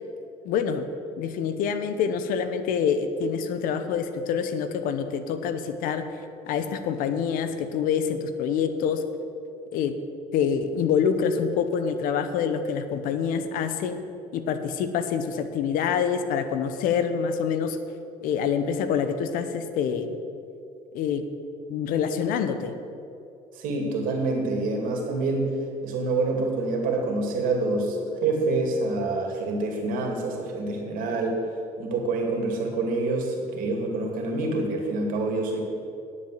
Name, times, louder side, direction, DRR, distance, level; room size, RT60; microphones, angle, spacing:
voice 1, 0.4-0.9 1.2-6.1 6.5-9.0 9.7-10.0 10.3-14.0 14.3-17.8 18.2-20.2 20.9-21.3 21.7-22.7, left 7 dB, 70° left, 10 dB, 0.9 m, -26 dB
voice 2, 23.5-25.6 25.8-31.4 31.8-35.6, right 3 dB, 70° right, 2 dB, 2.6 m, -27 dB
10.5 x 7.6 x 7.8 m, 2.6 s
supercardioid pair, 80°, 15 cm